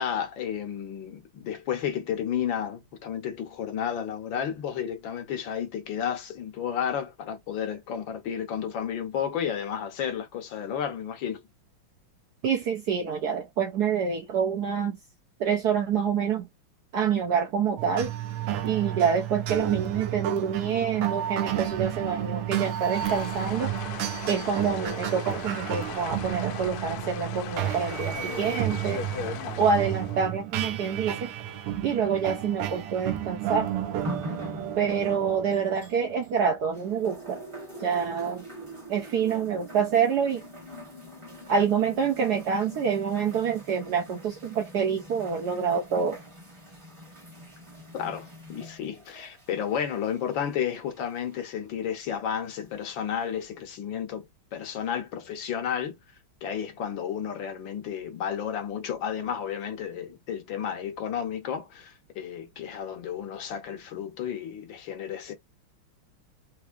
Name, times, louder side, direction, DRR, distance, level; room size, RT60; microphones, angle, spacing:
voice 1, 0.0-11.4 47.9-54.2 54.5-56.0 56.4-65.3, left 8 dB, 65° left, 1.6 m, -32 dB
voice 2, 12.4-15.0 15.4-16.5 16.9-18.1 18.6-23.7 24.3-29.0 29.6-31.3 31.8-33.7 34.8-37.4 37.8-38.4 38.9-40.4 41.5-46.2, right 7 dB, 65° right, 1.0 m, -27 dB
sound 1, 17.8-36.5, right 11 dB, 90° right, 1.7 m, -32 dB
sound 2, 22.9-30.3, left 7 dB, 85° left, 1.5 m, -38 dB
sound 3, 34.0-36.4 36.7-51.5 52.3-52.4, right 1 dB, 20° right, 0.9 m, -43 dB
4.4 x 2.7 x 2.5 m
omnidirectional pair, 2.3 m